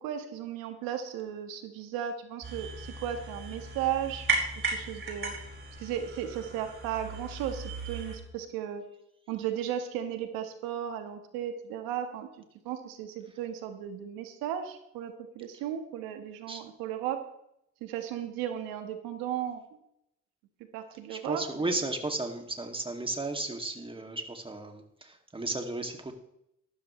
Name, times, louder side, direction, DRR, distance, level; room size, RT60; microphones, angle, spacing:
voice 1, 0.0-4.3 4.7-5.4 5.8-8.9 9.3-12.3 12.6-17.3 17.8-19.6 20.7-21.7, right 10 dB, 80° right, 7 dB, 1.5 m, -35 dB
sound 1, 2.4-8.2, right 3 dB, 35° right, 4.9 m, -35 dB
voice 2, 21.1-26.1, right 2 dB, 15° right, 4 dB, 2.4 m, -34 dB
13.5 x 13.0 x 3.2 m, 0.78 s
supercardioid pair, 75°, 34 cm